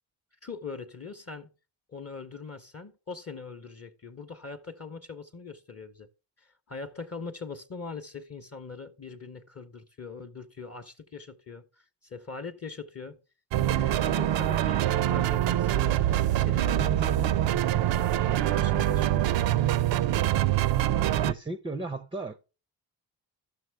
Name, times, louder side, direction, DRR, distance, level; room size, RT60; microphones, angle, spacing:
voice 1, 0.4-1.5 1.9-6.1 6.4-13.2 13.6-17.3 18.2-19.3, left 4 dB, 30° left, 0.8 m, -42 dB
sound 1, 13.5-21.3, right 12 dB, 60° right, 0.6 m, -25 dB
voice 2, 21.0-22.4, right 2 dB, 10° right, 0.5 m, -36 dB
13.5 x 6.1 x 3.3 m
hypercardioid pair, 40°, 50 cm